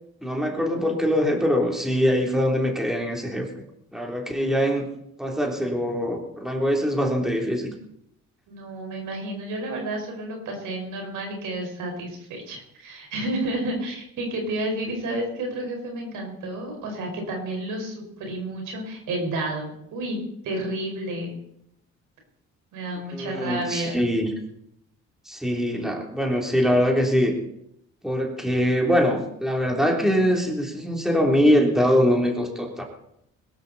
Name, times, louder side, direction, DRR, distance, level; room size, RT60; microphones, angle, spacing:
voice 1, 0.2-3.5 3.9-4.9 5.2-7.7 23.1-24.3 25.3-27.4 28.0-32.8, equal, ahead, 0 dB, 3.4 m, -23 dB
voice 2, 8.5-20.2 20.4-21.4 22.7-24.0, right 1 dB, 85° right, 2 dB, 5.3 m, -31 dB
21.5 x 12.5 x 4.2 m, 0.76 s
cardioid pair, 90°, 30 cm